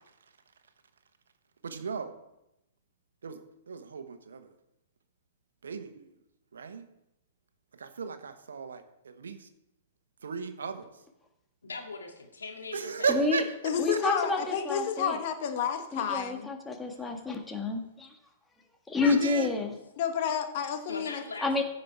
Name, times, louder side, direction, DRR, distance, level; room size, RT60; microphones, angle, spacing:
voice 1, 1.6-2.1 3.2-4.5 5.6-6.1 6.5-6.9 7.8-9.5 10.2-10.9 12.7-13.5 13.9-14.0 19.0-19.5, right 6 dB, 75° right, 9 dB, 1.2 m, -35 dB
voice 2, 11.6-13.2 20.9-21.6, left 3 dB, 80° left, 2 dB, 2.2 m, -40 dB
voice 3, 13.1-13.4 13.8-15.2 15.9-18.2 18.9-19.7 21.4-21.6, left 3 dB, 10° left, 3 dB, 1.7 m, -29 dB
voice 4, 13.6-16.5 20.0-21.2, left 8 dB, 50° left, 7 dB, 1.4 m, -30 dB
15.0 x 5.5 x 4.7 m, 0.87 s
figure-of-eight pair, 115°, 0 cm